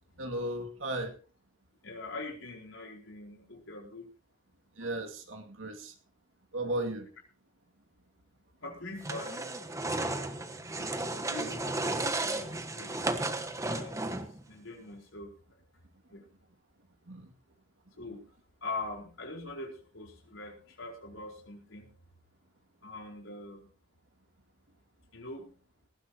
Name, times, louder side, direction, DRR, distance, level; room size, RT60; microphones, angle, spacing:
voice 1, 0.2-1.1 4.8-5.9 6.5-7.1 10.7-10.9 11.3-11.7 17.1-17.3, right 1 dB, 85° right, 3 dB, 2.4 m, -36 dB
voice 2, 1.8-4.1 4.8-4.9 8.6-9.5 11.3-13.1 13.7-14.0 14.5-15.6 16.1-16.2 18.0-18.2 18.6-21.9 22.8-23.7 25.1-25.5, left 2 dB, 80° left, 0 dB, 4.7 m, -43 dB
sound 1, 9.0-14.4, right 2 dB, 15° right, 1.3 m, -34 dB
19.0 x 14.5 x 2.9 m, 0.36 s
head